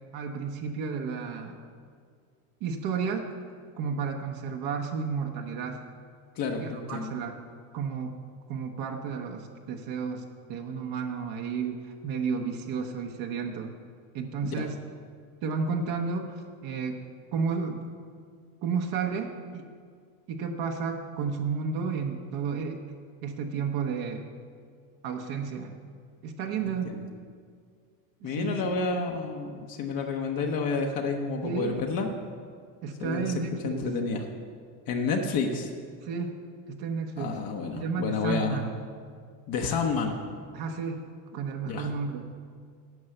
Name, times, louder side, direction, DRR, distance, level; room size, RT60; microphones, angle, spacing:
voice 1, 0.1-1.6 2.6-3.3 3.8-5.8 6.6-7.4 7.7-8.1 8.5-13.7 14.1-14.8 15.4-17.0 17.3-17.8 18.6-19.7 20.3-22.8 23.2-24.2 25.0-25.7 26.2-26.9 28.2-28.7 31.4-31.9 32.8-33.9 36.0-36.4 36.7-37.4 37.7-38.7 40.5-41.1 41.3-42.2, right 5 dB, 55° right, 3 dB, 1.0 m, -32 dB
voice 2, 6.4-7.1 14.4-14.6 26.8-26.9 28.2-32.1 33.0-33.3 33.6-34.2 34.9-35.7 37.2-38.7 39.5-40.2 41.6-41.9, left 4 dB, 50° left, 2 dB, 1.0 m, -30 dB
9.5 x 5.4 x 7.7 m, 2.1 s
supercardioid pair, 110°, 44 cm